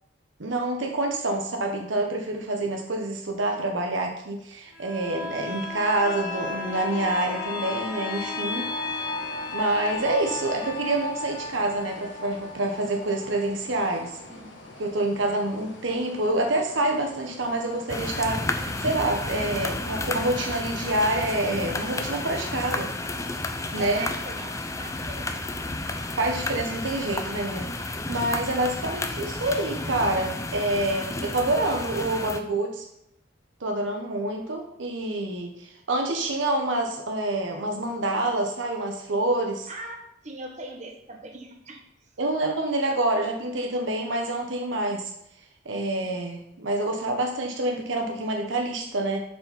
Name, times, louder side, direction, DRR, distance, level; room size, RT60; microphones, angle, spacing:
voice 1, 0.4-9.0 9.5-14.2 14.8-22.9 23.7-24.0 26.2-32.8 33.6-39.7 42.2-45.1 45.6-49.2, right 2 dB, 70° right, 2 dB, 0.9 m, -27 dB
sound 1, 4.7-14.3 14.7-14.8, left 3 dB, 50° left, 1.2 m, -34 dB
sound 2, 8.1-23.3, left 2 dB, 65° left, 1.6 m, -46 dB
voice 2, 14.3-14.7 23.7-25.3 25.7-25.8 39.7-39.9 40.2-41.8, right 2 dB, 35° right, 3 dB, 1.1 m, -41 dB
sound 3, 17.9-32.4, left 2 dB, 15° left, 0.5 m, -32 dB
7.3 x 5.0 x 5.4 m, 0.79 s
head